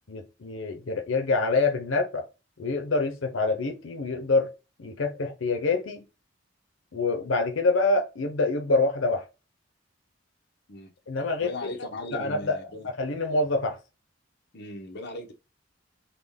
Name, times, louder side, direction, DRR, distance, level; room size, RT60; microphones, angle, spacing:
voice 1, 0.1-2.2 2.6-4.5 4.8-6.0 6.9-9.2 11.1-11.7 12.1-12.6 12.8-13.8, left 3 dB, 85° left, 0.7 m, -26 dB
voice 2, 11.4-12.9 14.5-15.3, left 1 dB, 60° left, 0.8 m, -38 dB
3.9 x 2.2 x 3.4 m
head